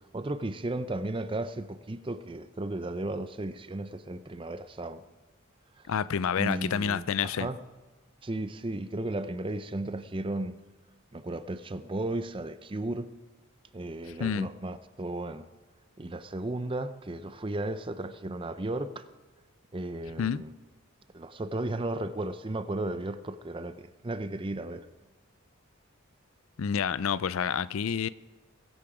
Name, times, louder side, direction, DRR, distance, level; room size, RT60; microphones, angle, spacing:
voice 1, 0.1-5.0 5.8-5.9 6.4-7.1 7.3-7.6 8.2-10.6 11.1-13.1 13.7-15.5 16.0-19.1 19.7-20.5 21.1-24.9, right 2 dB, 25° right, 0.5 m, -34 dB
voice 2, 5.9-7.5 14.2-14.5 20.2-20.4 26.6-28.1, left 7 dB, 70° left, 0.4 m, -28 dB
21.5 x 8.6 x 5.0 m
head